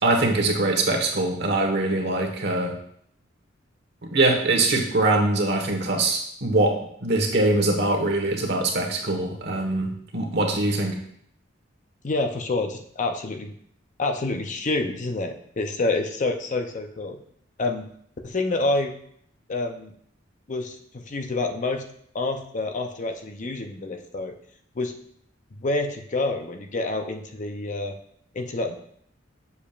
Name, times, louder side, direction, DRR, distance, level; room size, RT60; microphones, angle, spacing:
voice 1, 0.0-2.7 4.1-6.7 7.0-11.0, right 2 dB, 60° right, 2 dB, 1.3 m, -23 dB
voice 2, 12.0-13.5 14.0-17.2 17.6-17.9 18.2-18.9 19.5-19.9 20.5-21.8 22.1-24.3 24.8-24.9 25.5-27.9 28.3-28.8, left 2 dB, 40° left, 5 dB, 0.6 m, -27 dB
7.1 x 7.0 x 2.4 m, 0.66 s
head